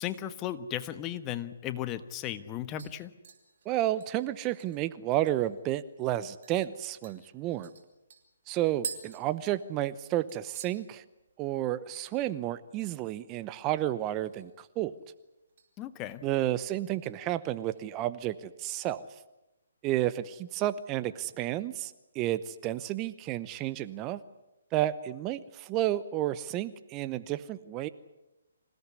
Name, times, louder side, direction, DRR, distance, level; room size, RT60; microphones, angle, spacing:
voice 1, 0.0-3.1 15.8-16.2, left 11 dB, 25° left, 12 dB, 1.3 m, -36 dB
sound 1, 2.8-5.6 6.0-6.1 6.4-6.6 7.0-10.0 10.3-10.8 11.1-11.5 11.8-11.9 14.0-14.6 15.0-15.7 16.1-16.4 16.9-17.8 18.2-18.3, right 7 dB, 55° right, 4.4 m, -47 dB
voice 2, 3.7-7.7 8.5-11.0 11.4-14.9 16.2-19.1 19.8-24.2 24.7-27.9, right 14 dB, 25° right, 14 dB, 0.8 m, -31 dB
26.5 x 17.0 x 9.8 m, 0.97 s
hypercardioid pair, 145°, 0 cm